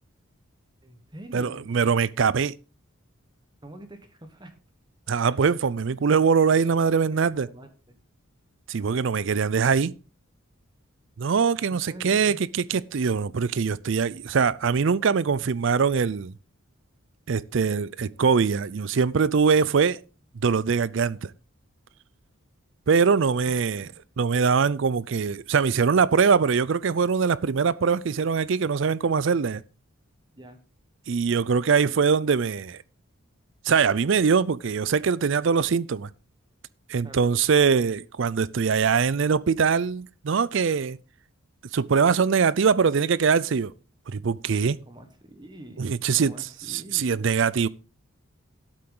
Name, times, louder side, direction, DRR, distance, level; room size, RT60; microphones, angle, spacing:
voice 1, 0.8-1.7 3.6-4.5 7.0-7.2 7.5-8.0 11.7-12.4 30.4-30.6 37.0-37.3 44.9-47.3, right 1 dB, 20° right, 1.3 m, -45 dB
voice 2, 1.3-2.5 5.1-7.5 8.7-9.9 11.2-16.3 17.3-20.0 20.4-21.3 22.9-23.9 24.2-29.6 31.1-32.8 33.7-36.1 36.9-41.0 41.7-43.7 44.1-44.8 45.8-46.3 46.7-47.7, right 5 dB, 60° right, 0.4 m, -22 dB
12.5 x 8.5 x 3.9 m
head